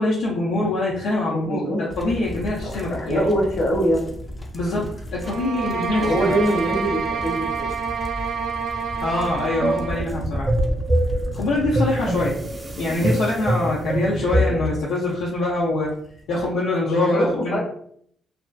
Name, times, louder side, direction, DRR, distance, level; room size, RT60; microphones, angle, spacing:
voice 1, 0.0-3.3 4.5-6.3 9.0-10.5 11.3-12.4 12.8-15.9 16.3-17.6, left 2 dB, 85° left, -5 dB, 0.5 m, -24 dB
voice 2, 1.3-1.8 2.6-4.1 6.0-7.7 17.1-17.6, equal, 70° left, -3 dB, 1.0 m, -23 dB
sound 1, 1.9-16.5, left 1 dB, 25° left, 0.4 m, -38 dB
sound 2, 5.2-10.1, right 6 dB, 65° right, 0.3 m, -28 dB
sound 3, 9.6-14.8, right 1 dB, 20° right, 0.7 m, -24 dB
2.4 x 2.3 x 2.2 m, 0.65 s
cardioid pair, 90°, 0 cm